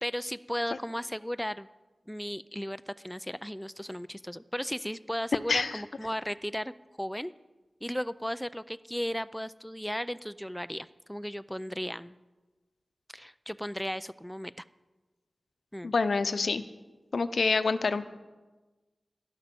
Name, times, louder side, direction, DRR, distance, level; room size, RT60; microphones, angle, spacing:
voice 1, 0.0-1.7 2.1-6.7 7.0-7.3 7.8-12.2 13.1-14.5 15.7-15.9, equal, 5° left, 14 dB, 0.4 m, -35 dB
voice 2, 5.5-5.8 15.8-16.6 17.1-18.1, left 4 dB, 80° left, 11 dB, 0.7 m, -27 dB
11.5 x 11.5 x 6.9 m, 1.2 s
wide cardioid pair, 55°, 0 cm